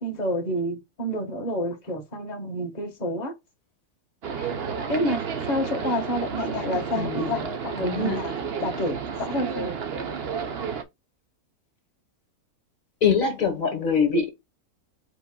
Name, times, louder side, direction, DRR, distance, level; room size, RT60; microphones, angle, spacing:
voice 1, 0.0-3.3 4.4-4.5 4.9-9.8, equal, 30° left, 1.5 m, -29 dB
sound 1, 4.2-10.8, right 6 dB, 50° right, 0.9 m, -31 dB
voice 2, 7.0-7.3 7.8-8.2 13.0-14.3, left 6 dB, 65° left, 1.8 m, -23 dB
5.0 x 4.6 x 2.2 m
omnidirectional pair, 1.6 m